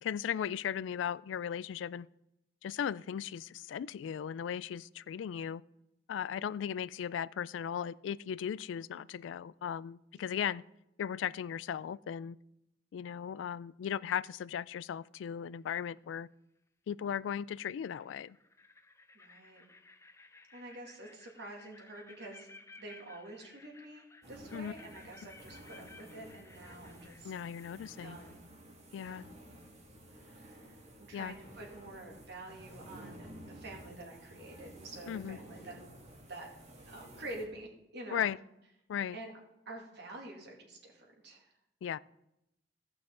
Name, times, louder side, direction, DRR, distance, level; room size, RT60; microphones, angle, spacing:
voice 1, 0.0-2.1 2.6-5.6 6.1-10.6 11.0-12.4 12.9-16.3 16.9-18.4 24.5-24.7 27.2-28.2 28.9-29.3 31.1-31.3 35.1-35.4 38.1-38.4 38.9-39.2 41.8-42.0, left 8 dB, 90° left, 20 dB, 0.3 m, -37 dB
voice 2, 6.2-6.5 10.3-10.4 19.1-19.6 20.5-22.5 22.8-27.3 28.0-28.4 28.9-29.3 30.1-35.8 36.3-36.5 36.8-38.3 39.1-39.3 39.7-41.5, right 2 dB, 65° right, -1 dB, 2.4 m, -48 dB
sound 1, 15.4-15.9 17.4-17.5 17.9-28.4, left 3 dB, 15° left, 0.5 m, -58 dB
sound 2, 24.2-37.4, right 1 dB, 40° right, 2.0 m, -53 dB
16.5 x 5.8 x 3.8 m, 0.85 s
head